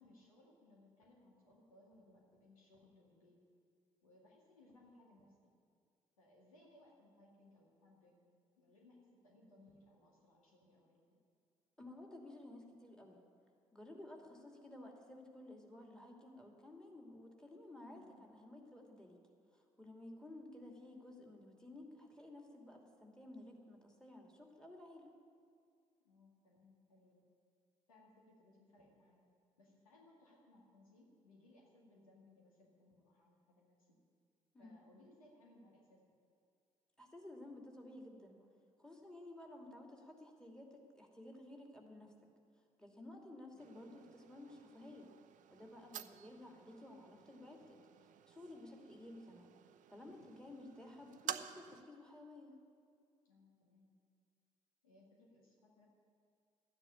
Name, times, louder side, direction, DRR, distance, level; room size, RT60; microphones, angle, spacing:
voice 1, 0.0-3.4 4.0-5.5 6.2-8.2 8.6-11.0 17.9-18.2 26.0-27.2 27.9-29.2 29.6-33.9 34.6-36.0 53.2-53.9 54.8-55.9, left 2 dB, 80° left, -2 dB, 2.1 m, -65 dB
voice 2, 11.8-13.2 13.7-19.2 19.5-25.1 34.5-34.8 37.0-38.5 38.8-42.1 42.8-45.1 45.5-47.8 48.3-49.6 49.9-52.6, left 1 dB, 5° left, 1 dB, 2.7 m, -54 dB
sound 1, 43.6-51.8, right 11 dB, 45° right, 0.6 m, -51 dB
12.5 x 9.8 x 9.7 m, 2.2 s
figure-of-eight pair, 45°, 18 cm